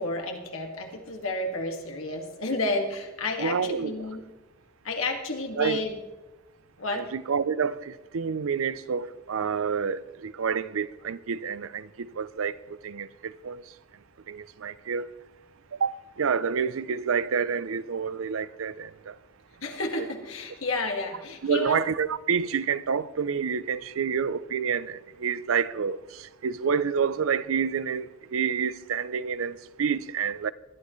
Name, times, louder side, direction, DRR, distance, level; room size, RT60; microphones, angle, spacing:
voice 1, 0.0-4.2 4.8-6.0 6.8-7.1 19.6-21.8, left 2 dB, 75° left, 2.0 m, -31 dB
voice 2, 3.4-4.0 5.6-5.8 6.9-13.6 14.3-15.1 15.7-19.2 21.4-30.5, right 6 dB, 70° right, 0.5 m, -28 dB
20.5 x 12.0 x 3.1 m
head